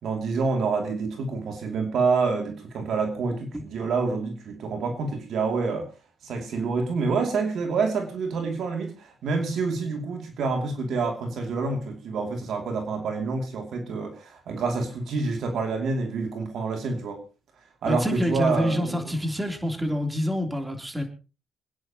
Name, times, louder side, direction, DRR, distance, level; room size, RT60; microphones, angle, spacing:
voice 1, 0.0-5.9 6.2-17.2 17.8-19.1, right 4 dB, 70° right, 2.7 m, -27 dB
voice 2, 17.8-21.0, equal, 15° right, 3.4 m, -27 dB
27.5 x 9.8 x 3.0 m
supercardioid pair, 70°, 0 cm